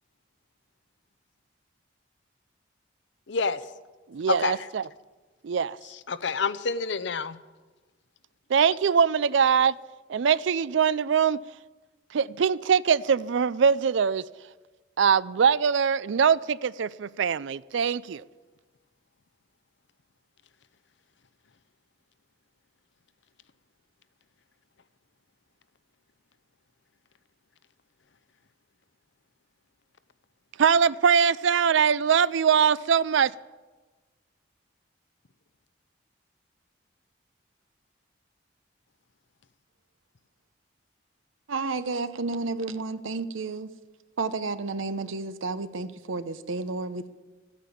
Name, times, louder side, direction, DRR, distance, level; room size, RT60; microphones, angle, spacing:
voice 1, 3.3-3.6 4.3-4.7 5.8-7.4, left 4 dB, 65° left, 0.7 m, -28 dB
voice 2, 4.1-4.8 5.4-5.8 8.5-9.7 10.1-11.4 12.1-14.2 15.0-18.2 30.6-33.3, right 7 dB, 70° right, 0.4 m, -22 dB
voice 3, 41.5-43.7 44.2-47.1, right 3 dB, 85° right, 0.8 m, -31 dB
14.0 x 9.3 x 8.6 m
head